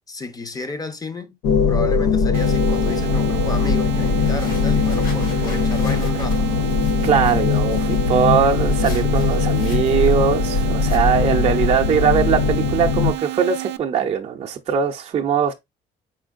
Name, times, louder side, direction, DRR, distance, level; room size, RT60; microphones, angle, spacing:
voice 1, 0.1-1.4 1.7-6.6, left 3 dB, 20° left, 0.7 m, -32 dB
sound 1, 1.4-13.1, left 5 dB, 80° left, 0.6 m, -20 dB
sound 2, 2.3-13.8, right 18 dB, 85° right, 0.4 m, -31 dB
sound 3, 4.0-11.0, left 4 dB, 55° left, 1.7 m, -42 dB
voice 2, 7.0-15.5, right 7 dB, 40° right, 0.6 m, -20 dB
4.4 x 4.3 x 2.4 m
cardioid pair, 110°, 17 cm